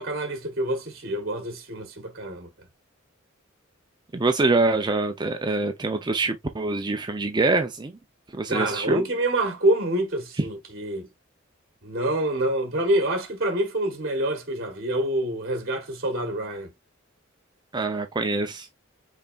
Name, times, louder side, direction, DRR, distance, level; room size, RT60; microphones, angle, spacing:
voice 1, 0.0-2.5 8.5-11.1 11.8-16.7, right 1 dB, 45° right, 1.2 m, -26 dB
voice 2, 4.1-7.9 8.3-9.0 17.7-18.7, right 3 dB, 20° right, 0.5 m, -25 dB
5.7 x 4.0 x 2.3 m
head